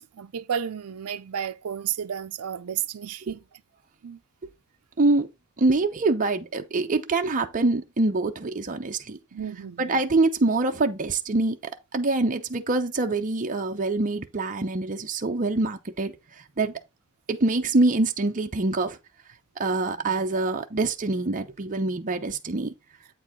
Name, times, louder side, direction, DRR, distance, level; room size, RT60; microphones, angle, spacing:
voice 1, 0.0-3.4 4.0-4.2 9.3-10.0, right 8 dB, 75° right, 0.5 m, -32 dB
voice 2, 5.0-5.3 5.6-9.2 9.8-11.6 11.9-16.2 16.6-16.8 17.3-19.0 19.6-22.7, right 2 dB, 35° right, 0.7 m, -25 dB
8.3 x 4.7 x 3.6 m
head